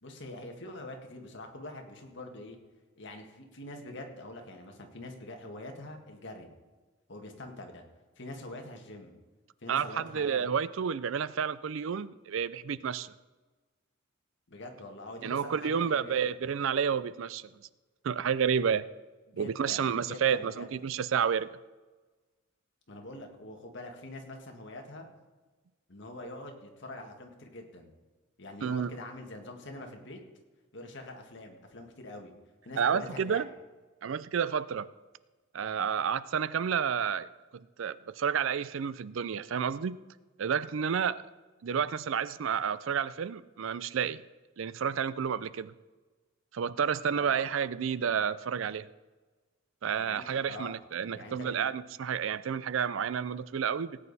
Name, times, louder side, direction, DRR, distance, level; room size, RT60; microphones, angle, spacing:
voice 1, 0.0-2.6 3.0-6.5 7.1-7.8 8.1-9.2 9.6-10.5 14.5-16.4 19.3-20.7 22.9-25.1 25.9-27.9 28.4-30.2 30.7-32.3 32.6-33.4 47.1-47.5 50.0-50.8 51.1-51.7, left 1 dB, 60° left, 3 dB, 1.8 m, -44 dB
voice 2, 9.7-13.1 15.2-17.4 18.0-18.9 19.3-21.5 28.6-28.9 32.8-33.5 34.0-34.9 35.5-37.3 37.8-40.0 40.4-41.2 41.6-44.2 44.6-45.7 46.5-48.9 49.8-54.0, right 7 dB, 65° right, 17 dB, 0.4 m, -30 dB
18.0 x 8.9 x 4.1 m, 1.3 s
head